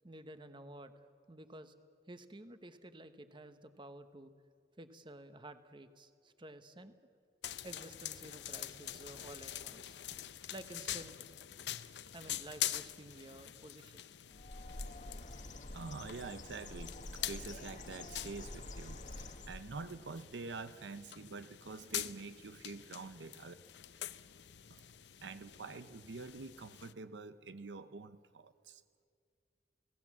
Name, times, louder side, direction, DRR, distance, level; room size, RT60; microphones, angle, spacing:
voice 1, 0.0-1.8 2.1-4.3 4.8-7.0 7.6-10.0 10.5-11.2 12.1-14.0, right 1 dB, 25° right, 9 dB, 1.2 m, -52 dB
sound 1, 7.4-26.9, left 12 dB, 70° left, 0.6 m, -45 dB
Bird, 14.3-19.9, left 2 dB, 45° left, 1.4 m, -47 dB
voice 2, 15.1-15.4 15.7-23.5 24.7-24.8 25.2-28.8, right 4 dB, 80° right, 12 dB, 0.7 m, -47 dB
29.0 x 18.0 x 7.4 m, 2.2 s
head